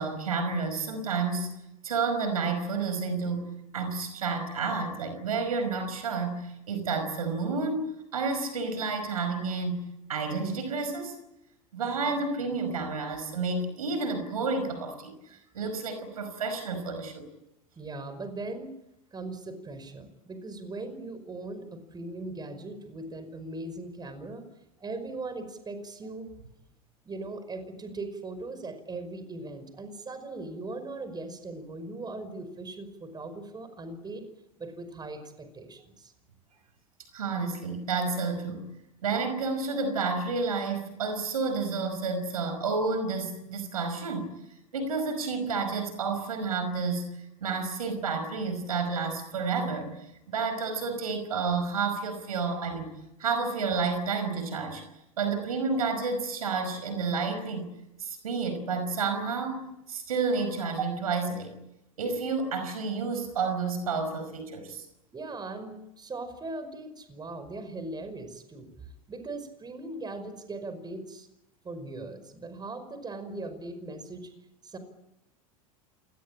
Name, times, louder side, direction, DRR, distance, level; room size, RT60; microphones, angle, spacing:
voice 1, 0.0-1.5 1.8-3.5 3.7-11.2 11.7-17.3 37.1-38.7 39.0-44.3 44.7-52.9 53.2-54.8 55.2-57.7 58.0-61.5 62.0-64.8, right 4 dB, 85° right, 9 dB, 5.3 m, -30 dB
voice 2, 17.8-18.7 19.1-24.4 24.8-26.3 27.0-34.3 34.6-36.1 65.1-68.8 69.1-71.3 71.6-74.3 74.6-74.8, right 2 dB, 25° right, 10 dB, 5.5 m, -39 dB
28.0 x 19.0 x 8.9 m, 0.86 s
hypercardioid pair, 85°, 18 cm